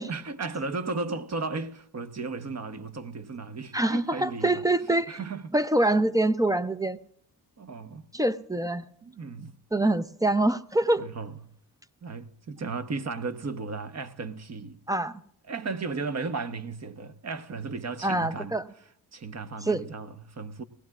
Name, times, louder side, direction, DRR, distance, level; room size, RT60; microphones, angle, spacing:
voice 1, 0.0-4.6 5.1-5.5 7.6-8.0 9.0-9.5 11.0-11.3 12.0-14.8 15.5-18.6 19.1-20.6, right 4 dB, 40° right, 1.0 m, -35 dB
voice 2, 3.7-5.2 5.5-7.0 8.1-8.8 9.7-11.1 14.9-15.2 18.0-18.6 19.6-19.8, right 1 dB, 10° right, 0.6 m, -25 dB
19.5 x 16.0 x 2.4 m
supercardioid pair, 50°, 42 cm